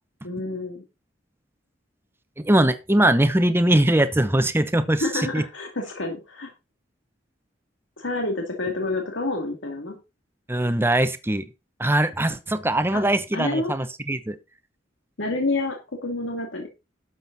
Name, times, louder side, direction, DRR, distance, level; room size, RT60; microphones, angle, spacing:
voice 1, 0.2-0.8 5.0-6.5 8.0-10.0 12.9-13.0 13.3-13.7 15.2-16.7, left 2 dB, 80° left, 2.5 m, -28 dB
voice 2, 2.4-5.4 10.5-11.5 11.8-14.4, right 1 dB, 10° right, 0.9 m, -21 dB
12.0 x 7.5 x 4.1 m
head